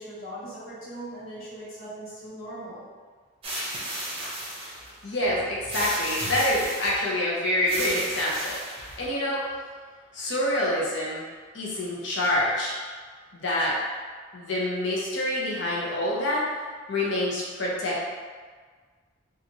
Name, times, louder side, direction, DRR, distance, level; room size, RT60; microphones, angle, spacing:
voice 1, 0.0-2.8, right 1 dB, 85° left, -9 dB, 1.1 m, -39 dB
sound 1, 3.4-4.9 5.7-7.0 7.6-9.1, right 1 dB, 30° right, 0.7 m, -33 dB
voice 2, 5.0-8.6 9.0-9.5 10.1-11.3 11.5-12.8 13.3-13.8 14.3-16.5 16.9-18.1, left 1 dB, 60° left, -5 dB, 0.7 m, -26 dB
2.9 x 2.4 x 2.6 m, 1.5 s
head